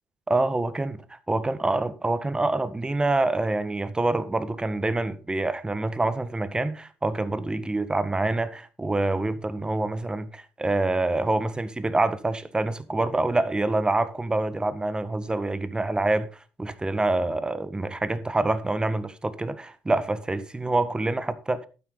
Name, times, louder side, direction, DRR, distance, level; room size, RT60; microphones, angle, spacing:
voice 1, 0.3-16.3 16.6-21.7, right 2 dB, 20° right, 1.6 m, -26 dB
12.0 x 9.5 x 4.0 m
supercardioid pair, 65°, 5 cm